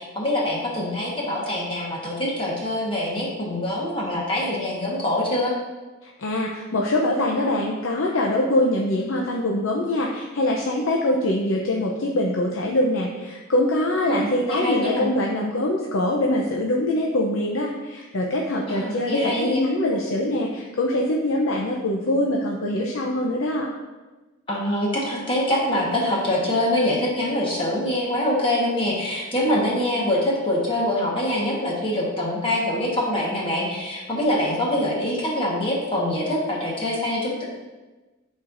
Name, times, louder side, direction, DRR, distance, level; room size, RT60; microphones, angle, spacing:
voice 1, 0.0-5.5 14.1-15.1 18.6-19.6 24.5-37.4, left 1 dB, 25° left, -4 dB, 1.3 m, -24 dB
voice 2, 6.0-23.7, left 1 dB, 85° left, -1 dB, 0.7 m, -23 dB
10.5 x 4.4 x 2.6 m, 1.2 s
head